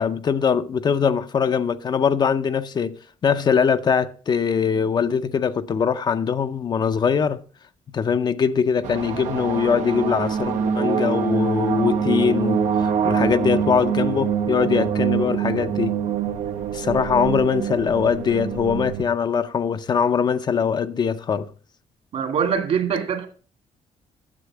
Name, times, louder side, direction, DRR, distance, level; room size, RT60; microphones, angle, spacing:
voice 1, 0.0-3.0 3.2-7.4 7.9-16.0 16.7-21.5, left 6 dB, 35° left, 0.6 m, -22 dB
sound 1, 8.8-19.0, right 7 dB, 85° right, 1.2 m, -24 dB
voice 2, 22.1-23.3, right 7 dB, 60° right, 2.3 m, -23 dB
9.8 x 7.4 x 5.9 m
cardioid pair, 150°, 12 cm